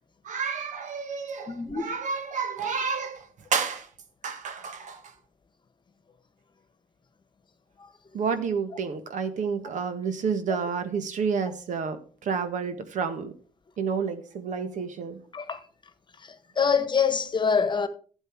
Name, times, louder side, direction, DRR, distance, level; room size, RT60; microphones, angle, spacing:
voice 1, 0.2-3.9 4.2-5.0 8.1-13.3 13.8-15.2, right 6 dB, 60° right, 1.6 m, -30 dB
voice 2, 1.5-1.9 15.3-15.6 16.2-17.9, left 6 dB, 35° left, 1.4 m, -25 dB
12.5 x 8.2 x 4.7 m
supercardioid pair, 70°, 14 cm